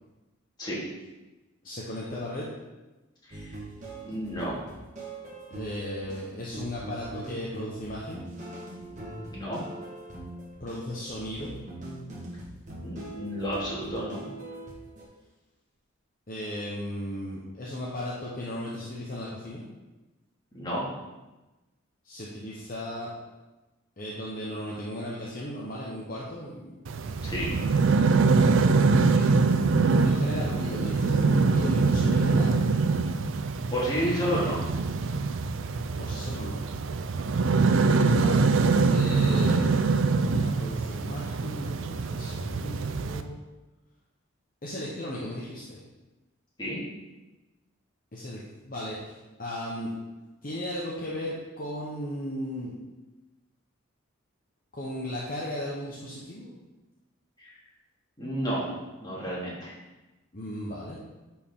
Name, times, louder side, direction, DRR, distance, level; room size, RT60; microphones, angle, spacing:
voice 1, 1.6-2.6 5.5-8.2 10.6-11.5 16.3-19.6 22.0-23.1 24.0-26.8 29.0-29.3 30.0-32.6 36.0-36.6 37.9-38.4 38.9-39.8 40.1-43.4 44.6-45.8 48.1-49.9 50.4-52.7 54.7-56.5 60.3-61.0, left 1 dB, 40° left, -6 dB, 1.0 m, -36 dB
sound 1, 3.3-15.0, right 2 dB, 35° right, 1.5 m, -42 dB
voice 2, 4.0-4.6 9.3-9.6 12.8-14.3 20.5-20.8 27.2-27.5 33.7-34.6 46.6-46.8 57.4-57.5 58.2-58.7 59.0-59.7, equal, 20° left, -7 dB, 2.2 m, -31 dB
sound 2, 26.9-43.2, right 4 dB, 65° right, 0.4 m, -24 dB
9.9 x 4.5 x 3.7 m, 1.1 s
head